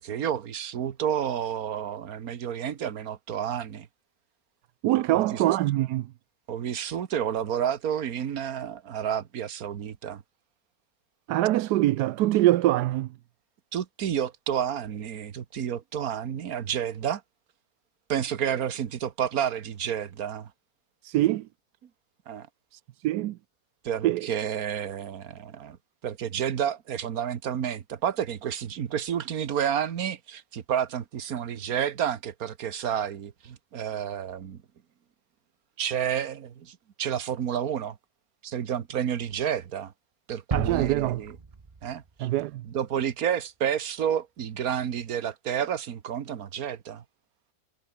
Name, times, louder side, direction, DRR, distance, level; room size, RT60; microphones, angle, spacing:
voice 1, 0.0-3.9 4.9-5.4 6.5-10.2 13.7-17.2 18.1-20.5 22.3-22.5 23.8-25.8 26.0-34.6 35.8-38.0 38.4-39.9 40.3-41.3 41.8-42.3 42.6-47.0, right 9 dB, 65° right, 1.6 m, -30 dB
voice 2, 4.8-6.1 11.3-13.1 21.0-21.5 23.0-23.4 24.0-24.3 40.5-41.2 42.2-42.7, right 15 dB, 85° right, 1.2 m, -24 dB
sound 1, 40.5-42.6, right 4 dB, 25° right, 1.0 m, -34 dB
omnidirectional pair, 1.7 m